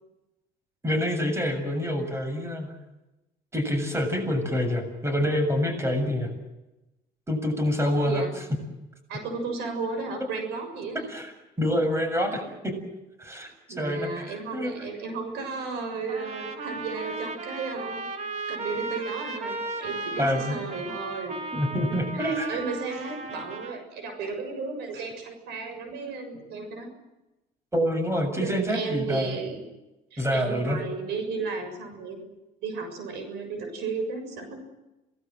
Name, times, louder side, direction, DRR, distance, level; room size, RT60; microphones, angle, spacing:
voice 1, 0.8-2.7 3.5-6.3 7.3-8.2 11.1-11.3 11.6-12.7 13.2-14.7 20.2-20.6 21.5-22.6 27.7-29.3 30.2-30.8, equal, 15° right, 6 dB, 7.3 m, -26 dB
voice 2, 8.0-8.3 9.1-11.1 13.7-18.1 18.5-21.4 22.1-26.9 28.4-29.6 30.1-32.3 32.6-34.6, right 4 dB, 85° right, 6 dB, 6.9 m, -34 dB
Trumpet, 16.1-23.8, right 3 dB, 45° right, 3.5 m, -35 dB
28.0 x 20.0 x 7.8 m, 1.0 s
cardioid pair, 110°, 17 cm